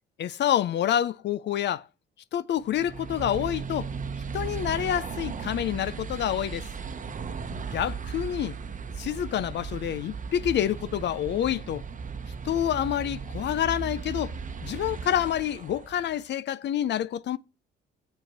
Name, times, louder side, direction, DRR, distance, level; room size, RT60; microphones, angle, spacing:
voice 1, 0.2-1.9 2.3-3.9 4.3-6.7 7.5-8.6 9.0-11.8 12.4-14.4 14.6-17.4, left 10 dB, 60° left, 0.5 m, -28 dB
sound 1, 2.6-16.2, right 5 dB, 40° right, 0.9 m, -36 dB
7.4 x 5.5 x 7.2 m
cardioid pair, 90°, 20 cm